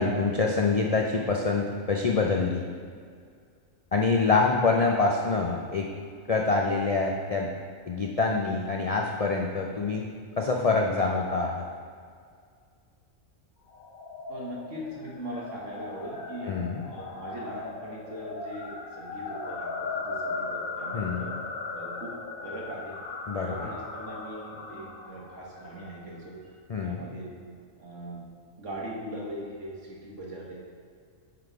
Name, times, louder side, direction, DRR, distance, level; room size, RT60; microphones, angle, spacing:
voice 1, 0.0-2.6 3.9-5.9 6.3-7.5 7.9-10.1 10.4-11.6 16.4-16.8 20.9-21.3 23.3-23.7 26.7-27.0, left 3 dB, 60° left, 0 dB, 0.3 m, -26 dB
sound 1, 13.7-26.1, left 3 dB, 85° left, 1.5 m, -38 dB
voice 2, 14.3-16.5 16.9-21.3 21.7-22.1 22.4-22.9 23.3-26.4 26.8-27.4 27.8-28.2 28.6-30.6, right 1 dB, 60° right, -3 dB, 1.8 m, -40 dB
10.5 x 4.0 x 4.6 m, 2.2 s
omnidirectional pair, 1.4 m